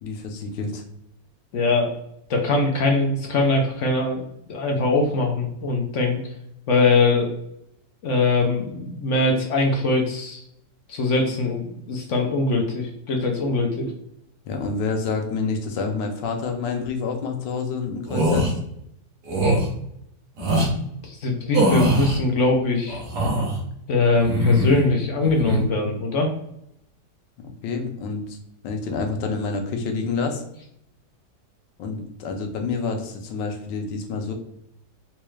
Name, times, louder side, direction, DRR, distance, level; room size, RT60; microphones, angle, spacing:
voice 1, 0.0-0.8 14.4-18.5 27.4-28.4 28.6-30.4 31.8-34.3, left 4 dB, 90° left, 4 dB, 1.4 m, -28 dB
voice 2, 1.5-1.9 2.3-4.2 4.5-6.2 6.7-7.3 8.0-10.4 10.9-13.9 21.0-23.0 23.9-26.3, left 3 dB, 70° left, 2 dB, 0.7 m, -22 dB
sound 1, 18.1-18.5 19.3-19.7 20.4-20.7 21.5-22.2 22.9-23.6 24.2-24.9 25.2-25.6, equal, 70° right, 1.4 m, -21 dB
4.1 x 2.3 x 3.1 m, 0.76 s
omnidirectional pair, 1.9 m